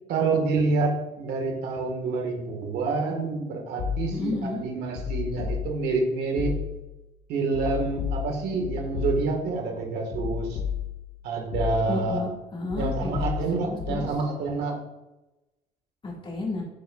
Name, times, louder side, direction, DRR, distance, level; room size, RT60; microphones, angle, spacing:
voice 1, 0.1-6.6 7.3-10.6 11.2-12.2 12.8-14.8, right 3 dB, 75° right, 1 dB, 1.8 m, -27 dB
sound 1, 3.8-4.4 5.0-6.0 6.4-7.0 7.5-9.6 10.1-11.2 11.5-12.2 12.7-14.1, left 8 dB, 80° left, 1.5 m, -32 dB
voice 2, 4.1-4.6 11.9-14.1 16.0-16.6, left 2 dB, 30° left, -2 dB, 2.1 m, -32 dB
10.5 x 4.6 x 2.5 m, 0.97 s
cardioid pair, 110°, 17 cm